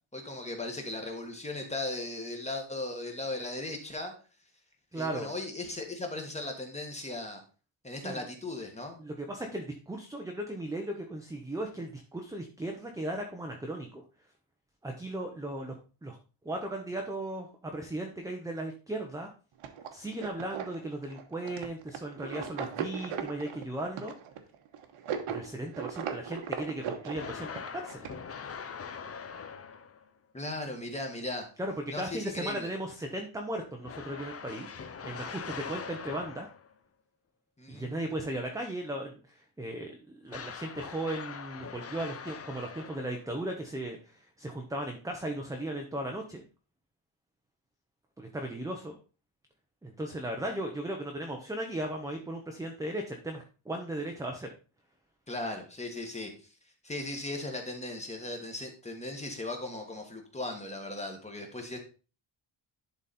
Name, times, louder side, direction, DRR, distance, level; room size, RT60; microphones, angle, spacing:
voice 1, 0.1-4.1 4.9-7.4 7.8-9.0 30.3-31.5 31.9-32.7 37.6-38.0 55.3-56.3 56.8-61.8, left 2 dB, 15° left, 3 dB, 1.5 m, -37 dB
voice 2, 4.9-5.3 7.9-8.2 9.0-14.0 14.8-15.7 16.0-16.2 16.4-19.3 19.9-24.1 25.3-28.1 31.6-34.7 35.0-36.5 37.7-46.4 48.2-49.0 49.8-54.5, right 1 dB, 5° right, 3 dB, 0.7 m, -36 dB
sound 1, 19.6-28.1, right 7 dB, 80° right, 1.3 m, -38 dB
sound 2, 27.1-30.1 33.8-36.7 40.3-43.4, left 6 dB, 30° left, 0.6 m, -42 dB
11.0 x 4.1 x 4.2 m, 0.35 s
wide cardioid pair, 170°, 50 cm